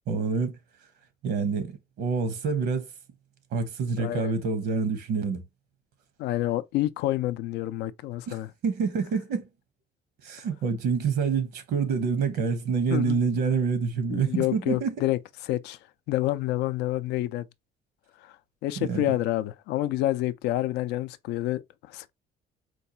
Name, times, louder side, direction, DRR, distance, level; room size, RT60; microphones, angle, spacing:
voice 1, 0.1-0.6 1.2-2.9 3.5-5.4 8.3-8.4 8.6-9.5 10.2-15.0 18.8-19.0, right 5 dB, 75° right, 0.9 m, -27 dB
voice 2, 4.0-4.3 6.2-8.5 12.9-13.2 14.1-15.2 15.5-15.8 16.1-17.5 18.2-18.4 18.6-22.1, left 15 dB, 85° left, 0.4 m, -28 dB
4.5 x 2.4 x 2.7 m
cardioid pair, 110°, 17 cm